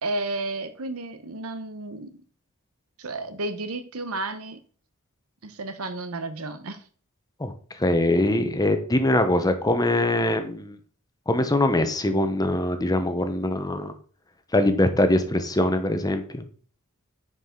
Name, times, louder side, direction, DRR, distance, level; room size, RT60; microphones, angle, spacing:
voice 1, 0.0-2.2 3.0-4.6 5.4-6.8, right 2 dB, 75° right, 10 dB, 1.0 m, -32 dB
voice 2, 7.4-10.8 11.3-13.9 14.5-16.4, left 1 dB, 15° left, 8 dB, 0.9 m, -23 dB
9.6 x 5.0 x 3.8 m, 0.43 s
head